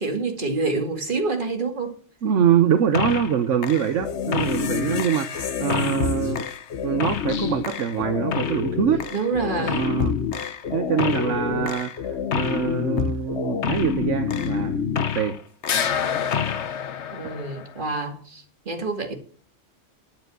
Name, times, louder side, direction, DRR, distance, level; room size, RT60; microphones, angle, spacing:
voice 1, 0.0-2.0 9.1-9.8 10.4-10.5 17.1-19.1, right 3 dB, 40° right, 2.4 m, -27 dB
voice 2, 2.2-6.5 6.8-9.0 9.6-10.2 10.7-14.8 15.1-15.4, right 8 dB, 70° right, 1.2 m, -24 dB
sound 1, 2.9-3.4 3.6-15.4 15.6-17.8, left 7 dB, 60° left, 1.2 m, -27 dB
10.5 x 9.4 x 6.2 m
omnidirectional pair, 1.3 m